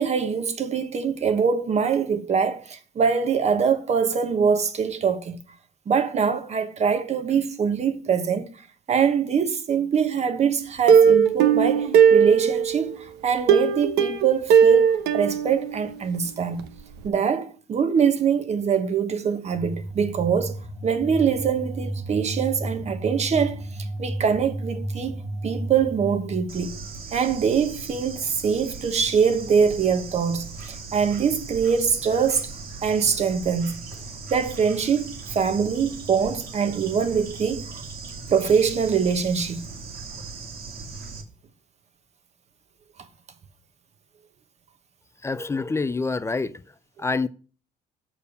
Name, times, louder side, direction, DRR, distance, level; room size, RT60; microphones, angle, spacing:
voice 1, 0.0-5.4 5.9-8.5 8.9-16.7 17.0-20.6 20.8-23.6 24.0-26.7 27.1-32.4 32.8-33.8 34.3-37.8 38.3-39.7, right 6 dB, 40° right, 1.2 m, -23 dB
Plucked string instrument, 10.9-12.9 13.5-16.3 16.6-16.7 17.0-17.1, right 7 dB, 80° right, 0.9 m, -18 dB
sound 1, 19.5-26.8, right 1 dB, 15° right, 2.3 m, -33 dB
Bird / Insect, 26.5-41.2, right 4 dB, 65° right, 1.9 m, -38 dB
voice 2, 45.2-46.5 47.0-47.3, left 3 dB, 15° left, 0.3 m, -26 dB
7.0 x 4.5 x 6.6 m
cardioid pair, 110°, 17 cm